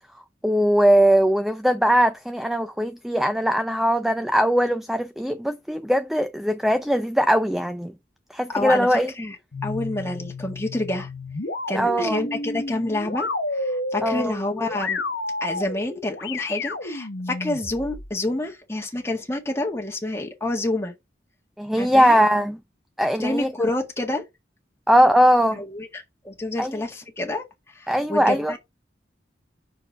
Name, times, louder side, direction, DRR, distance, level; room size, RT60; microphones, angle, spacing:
voice 1, 0.4-7.9 8.3-9.1 11.7-12.2 14.0-14.3 21.6-22.6 23.0-23.5 24.9-25.6 26.6-26.7 27.9-28.5, equal, ahead, 0.4 m, -20 dB
voice 2, 8.5-9.4 9.6-11.1 11.7-15.0 15.4-20.9 21.8-22.2 23.2-24.2 25.5-28.6, left 2 dB, 15° left, 1.7 m, -28 dB
sound 1, 9.5-18.1, left 2 dB, 65° left, 1.1 m, -31 dB
6.0 x 4.6 x 5.5 m
head